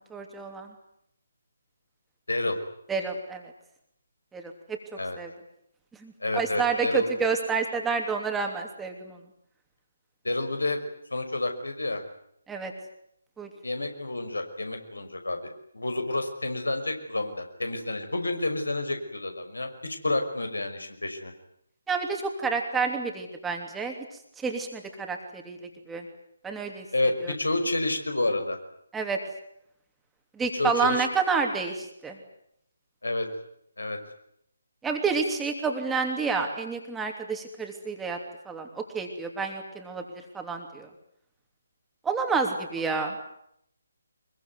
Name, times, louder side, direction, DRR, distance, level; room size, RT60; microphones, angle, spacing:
voice 1, 0.1-0.7 2.9-3.5 4.3-4.8 5.2-5.3 6.0-9.2 12.5-12.7 13.4-13.5 21.9-23.9 24.4-25.6 25.9-26.0 26.4-26.8 27.2-27.3 28.9-29.2 30.4-32.2 34.8-38.2 38.4-40.0 40.3-40.9 42.0-43.1, right 5 dB, 5° right, 3 dB, 3.0 m, -29 dB
voice 2, 2.3-2.6 5.0-5.2 6.2-7.1 10.2-10.8 11.1-12.0 13.6-21.3 26.9-28.6 30.5-31.0 33.0-33.3 33.8-34.0, left 2 dB, 75° left, 6 dB, 5.6 m, -29 dB
24.5 x 22.5 x 9.6 m, 0.74 s
figure-of-eight pair, 145°, 0 cm